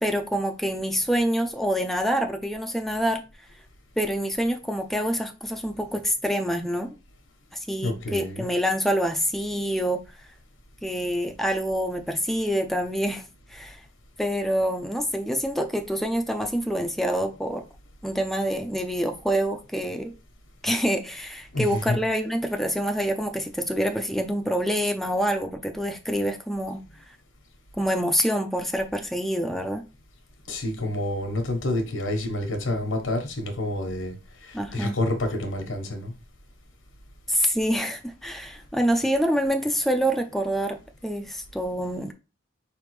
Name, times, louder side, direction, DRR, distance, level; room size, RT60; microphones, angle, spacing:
voice 1, 0.0-3.2 4.0-6.9 7.5-10.0 10.8-13.2 13.5-13.8 14.2-17.6 18.0-20.1 20.6-26.8 27.8-29.8 34.5-35.0 37.3-42.1, equal, ahead, 0.4 m, -26 dB
voice 2, 7.8-8.5 21.5-22.0 30.5-34.1 34.4-36.1, left 1 dB, 90° left, 1.2 m, -28 dB
4.9 x 3.4 x 3.2 m
head